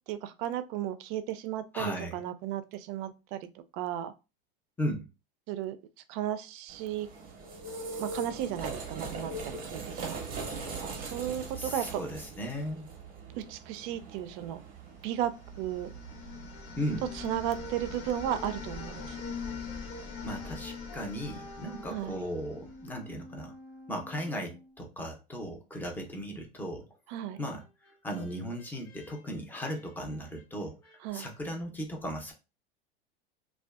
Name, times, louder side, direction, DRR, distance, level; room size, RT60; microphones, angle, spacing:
voice 1, 0.1-3.5 3.7-4.1 5.5-5.8 6.1-7.1 8.0-12.0 13.4-14.6 15.0-15.9 17.1-19.2 21.9-22.2 27.1-27.4 31.0-31.3, right 11 dB, 55° right, 0.5 m, -35 dB
voice 2, 1.7-2.2 4.8-5.1 11.6-12.9 16.8-17.0 20.2-23.5 23.9-26.9 27.4-27.6 28.0-30.8 31.1-32.3, equal, 5° left, 0.6 m, -36 dB
sound 1, 6.7-18.1, right 3 dB, 30° right, 0.8 m, -41 dB
sound 2, 15.1-23.1, left 5 dB, 45° left, 1.0 m, -43 dB
Brass instrument, 16.5-24.8 27.3-31.0, right 1 dB, 80° left, 1.0 m, -51 dB
2.5 x 2.3 x 2.3 m
hypercardioid pair, 105°, 30 cm